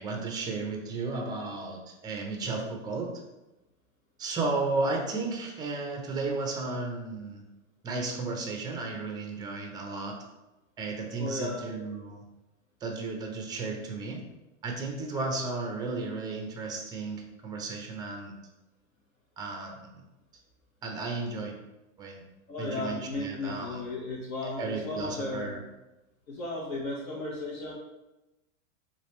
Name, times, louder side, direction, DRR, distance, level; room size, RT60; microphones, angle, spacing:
voice 1, 0.0-3.1 4.2-7.4 7.8-10.2 10.8-12.2 12.8-14.2 14.6-18.3 19.4-19.7 20.8-21.5 22.0-22.2 22.6-23.8 24.4-25.6, right 3 dB, 10° right, 2 dB, 0.3 m, -34 dB
voice 2, 11.2-11.8 22.5-25.6 26.3-27.7, left 2 dB, 80° left, -6 dB, 1.1 m, -35 dB
3.3 x 2.5 x 4.1 m, 1.0 s
hypercardioid pair, 115°, 41 cm